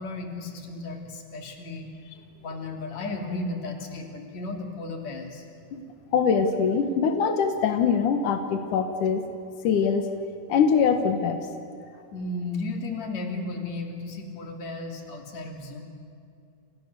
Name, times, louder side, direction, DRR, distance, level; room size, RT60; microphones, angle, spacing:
voice 1, 0.0-1.9 2.4-5.4 12.1-15.8, left 2 dB, 40° left, 2 dB, 3.5 m, -34 dB
voice 2, 6.1-9.2 9.6-10.1 10.5-11.5, left 6 dB, 80° left, 6 dB, 1.8 m, -23 dB
29.5 x 29.0 x 6.9 m, 2.5 s
omnidirectional pair, 5.8 m